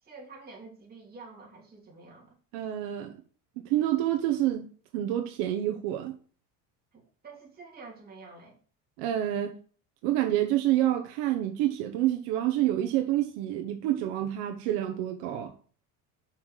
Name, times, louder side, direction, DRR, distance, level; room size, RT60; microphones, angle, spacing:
voice 1, 0.0-2.4 6.9-8.6, right 3 dB, 25° right, 3.1 m, -48 dB
voice 2, 2.5-3.1 3.6-6.1 9.0-9.6 10.0-15.5, right 13 dB, 75° right, 1.2 m, -28 dB
5.9 x 5.8 x 6.4 m
cardioid pair, 145°, 39 cm